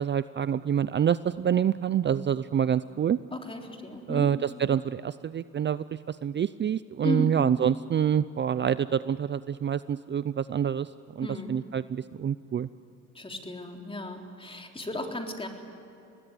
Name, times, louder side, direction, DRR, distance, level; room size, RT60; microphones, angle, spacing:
voice 1, 0.0-3.2 4.1-10.9 11.2-12.7, right 8 dB, 35° right, 15 dB, 0.5 m, -27 dB
voice 2, 3.3-4.3 7.0-7.4 11.2-11.5 13.1-15.5, left 1 dB, 20° left, 2 dB, 3.6 m, -34 dB
25.0 x 19.5 x 9.7 m, 2.8 s
cardioid pair, 90°, 30 cm